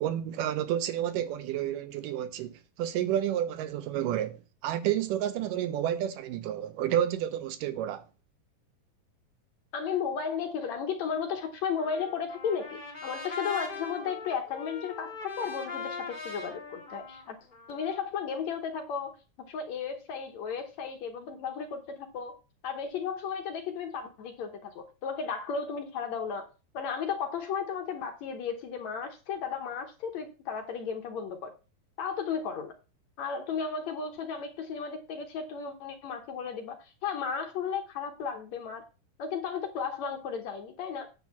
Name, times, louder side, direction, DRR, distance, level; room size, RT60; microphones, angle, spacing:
voice 1, 0.0-8.0, right 11 dB, 80° right, 2.1 m, -30 dB
voice 2, 9.7-17.4 17.7-19.2 19.5-22.4 22.6-26.5 26.7-31.5 32.0-32.7 33.2-38.8 39.2-41.1, left 6 dB, 65° left, 1.9 m, -34 dB
Trumpet, 11.8-18.0, left 4 dB, 20° left, 1.9 m, -40 dB
9.1 x 4.1 x 7.0 m
omnidirectional pair, 4.0 m